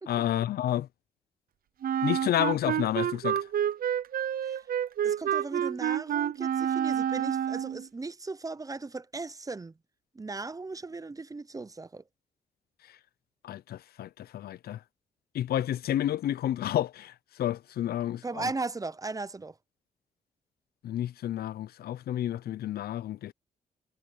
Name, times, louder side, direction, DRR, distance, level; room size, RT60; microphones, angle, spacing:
voice 1, 0.1-0.9 2.0-3.4 13.4-14.8 15.3-17.1 17.4-18.5 20.8-23.3, left 12 dB, 80° left, 0.6 m, -30 dB
Wind instrument woodwind instrument, 1.8-7.9, right 10 dB, 70° right, 0.6 m, -29 dB
voice 2, 5.0-9.7 10.2-12.0 18.2-19.5, right 3 dB, 20° right, 0.6 m, -37 dB
cardioid pair, 70°, 16 cm